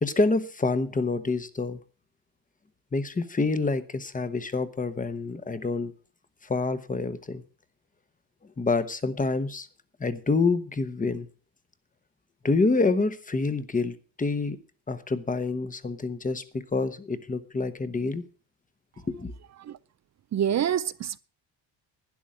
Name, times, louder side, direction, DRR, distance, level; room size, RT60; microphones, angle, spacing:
voice 1, 0.0-1.8 2.9-5.9 6.4-7.4 8.6-9.7 10.0-11.3 12.4-14.6 14.9-18.2 19.1-19.3, left 3 dB, 15° left, 1.0 m, -27 dB
voice 2, 20.3-21.2, right 9 dB, 35° right, 0.5 m, -26 dB
12.0 x 10.0 x 5.0 m
cardioid pair, 120°, 49 cm